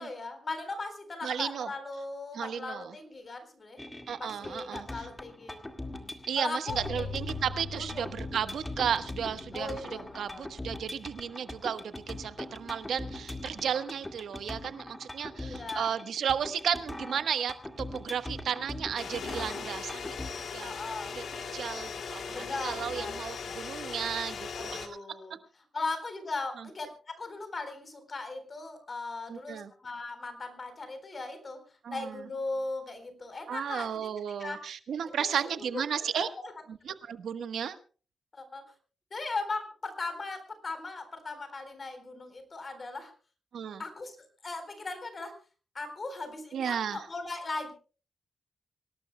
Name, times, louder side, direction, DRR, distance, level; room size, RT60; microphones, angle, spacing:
voice 1, 0.0-3.8 4.1-5.6 6.4-7.1 7.7-8.2 9.5-10.4 15.4-16.0 20.4-21.1 22.3-23.2 24.5-25.4 25.7-31.6 31.9-34.1 34.4-34.6 35.0-36.5 38.3-38.6 39.1-43.1 43.8-44.2 44.4-45.4 45.7-47.7, left 3 dB, 30° left, 8 dB, 4.0 m, -38 dB
voice 2, 1.2-1.7 2.3-2.9 4.1-5.1 6.3-9.8 10.1-20.7 21.1-21.2 21.5-25.0 26.6-26.7 29.3-29.7 31.8-32.2 33.5-36.3 36.8-37.8 43.5-43.8 46.5-47.1, right 8 dB, 75° right, 11 dB, 1.1 m, -34 dB
sound 1, 3.8-20.3, left 1 dB, 10° left, 1.9 m, -42 dB
sound 2, 6.7-10.8, left 3 dB, 80° left, 7.0 m, -42 dB
sound 3, 19.0-24.9, left 5 dB, 65° left, 2.3 m, -38 dB
25.5 x 18.5 x 2.2 m, 0.38 s
wide cardioid pair, 155°, 0 cm